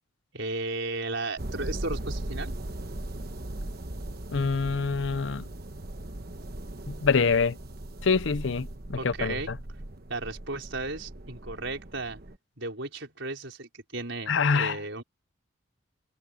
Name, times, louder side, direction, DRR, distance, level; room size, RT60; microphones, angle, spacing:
voice 1, 0.3-2.5 9.0-9.5 10.1-12.2 12.6-15.0, right 2 dB, 65° right, 5.2 m, -34 dB
sound 1, 1.4-12.4, right 1 dB, 50° right, 1.2 m, -38 dB
voice 2, 4.3-5.4 6.9-7.5 8.0-9.6 14.3-14.8, left 5 dB, 65° left, 0.6 m, -25 dB
head